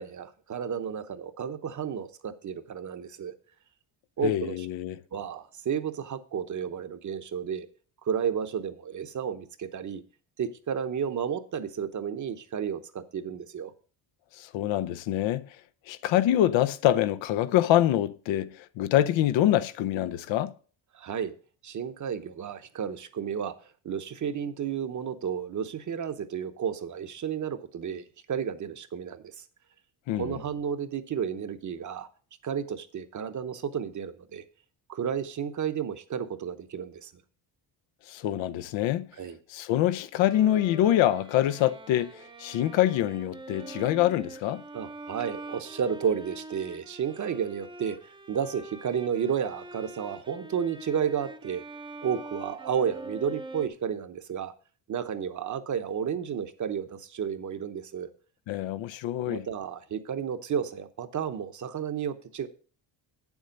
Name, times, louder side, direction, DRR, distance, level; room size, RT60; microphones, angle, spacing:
voice 1, 0.0-3.3 4.2-4.7 5.1-7.7 8.0-10.0 10.4-13.7 20.9-21.3 21.6-23.5 23.8-29.3 30.2-32.1 32.4-34.4 34.9-37.1 39.2-39.4 44.7-48.0 48.3-51.6 52.0-54.5 54.9-58.1 59.3-62.5, right 7 dB, 40° right, 0.9 m, -32 dB
voice 2, 4.2-5.0 14.4-15.5 15.9-18.5 18.8-20.5 30.1-30.4 38.1-39.1 39.5-44.6 58.5-59.4, left 12 dB, 80° left, 0.7 m, -25 dB
Bowed string instrument, 40.2-53.7, right 2 dB, 10° right, 0.6 m, -44 dB
8.5 x 7.2 x 5.2 m
cardioid pair, 120°, 45 cm